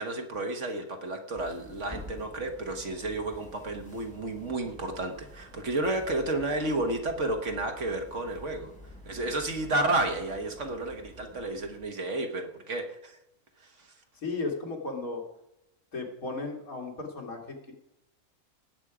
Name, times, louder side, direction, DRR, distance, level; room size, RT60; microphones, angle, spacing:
voice 1, 0.0-8.7 9.0-13.2 13.6-13.9, right 2 dB, 55° right, 5 dB, 1.6 m, -31 dB
sound 1, 1.3-11.8, left 1 dB, 5° left, 3.8 m, -49 dB
voice 2, 14.2-15.2 15.9-17.7, left 3 dB, 70° left, 1 dB, 2.7 m, -35 dB
18.0 x 8.1 x 4.9 m, 0.87 s
omnidirectional pair, 1.6 m